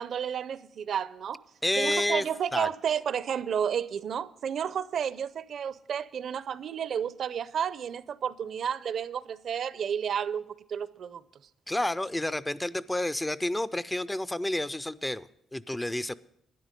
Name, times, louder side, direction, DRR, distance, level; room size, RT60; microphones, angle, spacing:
voice 1, 0.0-1.4 1.8-11.2, right 8 dB, 60° right, 0.5 m, -31 dB
voice 2, 1.6-2.2 2.5-2.7 11.7-16.1, left 1 dB, 10° left, 0.4 m, -30 dB
12.0 x 10.0 x 5.1 m
cardioid pair, 90°, 0 cm